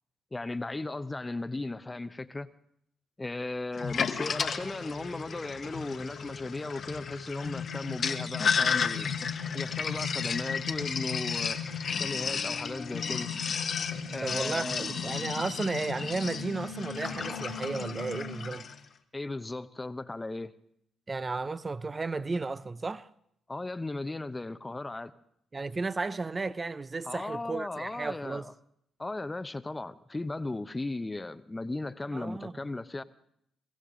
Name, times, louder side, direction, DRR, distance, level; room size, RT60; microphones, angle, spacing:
voice 1, 0.3-2.5 3.2-9.1 9.5-11.6 12.0-13.3 14.1-14.8 19.1-20.5 23.5-25.1 27.0-28.5 29.0-33.0, left 2 dB, 20° left, 0.8 m, -36 dB
Sink (filling or washing), 3.8-18.8, left 6 dB, 55° left, 1.2 m, -33 dB
sound 1, 4.5-18.4, left 7 dB, 90° left, 2.1 m, -41 dB
voice 2, 14.2-18.7 21.1-23.1 25.5-28.5 32.1-32.6, right 3 dB, 30° right, 0.7 m, -34 dB
23.0 x 15.5 x 3.8 m
supercardioid pair, 55°, 0 cm